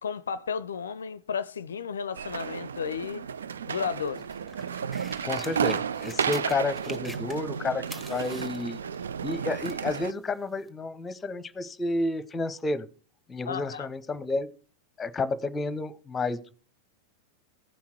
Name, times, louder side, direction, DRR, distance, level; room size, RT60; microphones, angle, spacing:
voice 1, 0.0-3.3 3.7-4.2 13.4-13.9, left 6 dB, 70° left, 0.4 m, -33 dB
sound 1, 2.1-10.1, right 7 dB, 70° right, 0.4 m, -32 dB
sound 2, 4.1-7.6 7.8-9.9 10.7-10.8, right 1 dB, 10° right, 1.4 m, -45 dB
voice 2, 5.2-7.8 8.1-8.8 9.2-12.9 13.3-14.5 15.0-16.6, left 3 dB, 15° left, 0.9 m, -31 dB
15.5 x 5.7 x 4.4 m
figure-of-eight pair, 90°, 0 cm